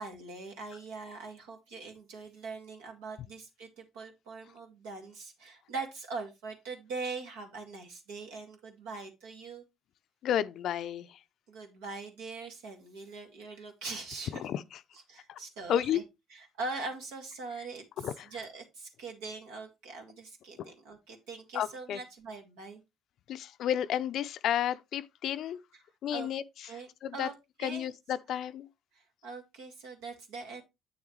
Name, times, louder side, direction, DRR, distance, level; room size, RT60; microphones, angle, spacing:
voice 1, 0.0-9.6 11.5-14.4 14.9-16.0 16.3-22.8 25.7-25.8 26.1-26.3 26.6-27.3 27.6-27.9 28.9-30.6, right 3 dB, 75° right, 2.2 m, -42 dB
voice 2, 10.2-11.2 14.4-14.6 15.3-15.4 15.7-16.0 18.0-18.3 21.5-22.0 23.3-25.6 26.0-26.4 27.0-27.3 27.6-28.7, left 10 dB, 60° left, 0.5 m, -31 dB
8.5 x 7.1 x 3.2 m
hypercardioid pair, 55°, 0 cm